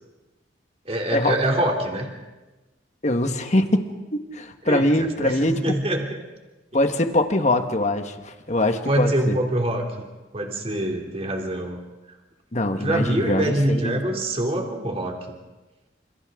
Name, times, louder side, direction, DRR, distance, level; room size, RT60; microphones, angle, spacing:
voice 1, 0.9-2.1 4.6-6.2 8.8-9.8 10.3-11.8 12.7-15.3, right 1 dB, 35° right, 1 dB, 3.0 m, -25 dB
voice 2, 3.0-5.8 6.7-9.4 12.5-14.0, left 1 dB, 40° left, 6 dB, 1.6 m, -23 dB
28.5 x 27.5 x 3.8 m, 1.1 s
head